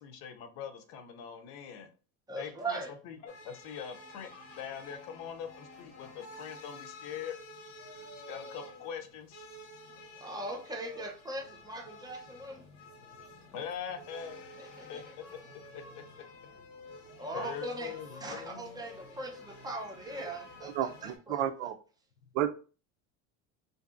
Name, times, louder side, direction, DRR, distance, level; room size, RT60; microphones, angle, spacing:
voice 1, 0.0-1.9 2.4-7.4 8.3-9.4 13.5-14.4 14.9-15.0 15.3-16.2 17.3-18.8, left 8 dB, 70° left, 0.7 m, -43 dB
voice 2, 2.3-2.9 10.2-12.6 14.6-15.0 17.2-21.7, right 2 dB, 10° right, 0.4 m, -40 dB
sound 1, 3.3-21.2, left 2 dB, 85° left, 1.0 m, -50 dB
voice 3, 20.7-21.7 22.3-22.5, right 11 dB, 90° right, 0.5 m, -31 dB
2.6 x 2.6 x 2.4 m
supercardioid pair, 120°, 37 cm